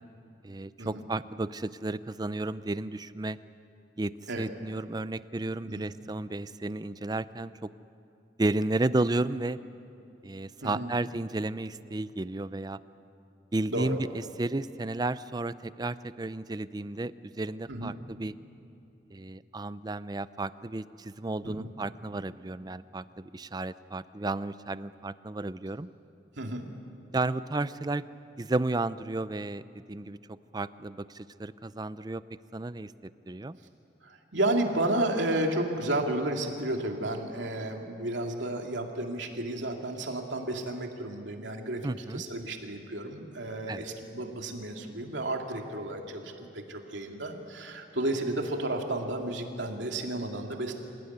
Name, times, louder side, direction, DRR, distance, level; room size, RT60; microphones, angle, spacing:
voice 1, 0.4-3.4 4.0-7.7 8.4-9.6 10.2-12.8 13.5-18.3 19.1-25.9 27.1-28.0 28.4-29.6 29.9-32.2 32.5-33.6 41.8-42.2 43.7-43.9, right 2 dB, 20° right, 15 dB, 0.5 m, -33 dB
voice 2, 10.6-10.9 13.7-13.9 17.7-18.0 21.4-21.7 26.4-26.7 34.0-41.8 42.1-50.7, right 1 dB, 85° right, 2 dB, 2.7 m, -32 dB
27.0 x 17.0 x 9.5 m, 2.7 s
head